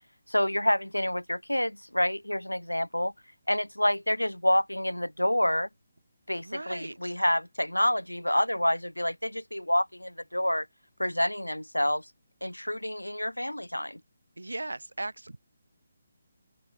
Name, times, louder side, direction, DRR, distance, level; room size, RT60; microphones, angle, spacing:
voice 1, 0.3-3.1 3.5-5.7 6.3-10.7 11.0-12.1 12.4-14.0, left 1 dB, 90° left, 6.1 m, -28 dB
voice 2, 6.4-7.2 14.4-15.4, right 2 dB, 75° right, 7.1 m, -38 dB
open air
figure-of-eight pair, 145°, 0 cm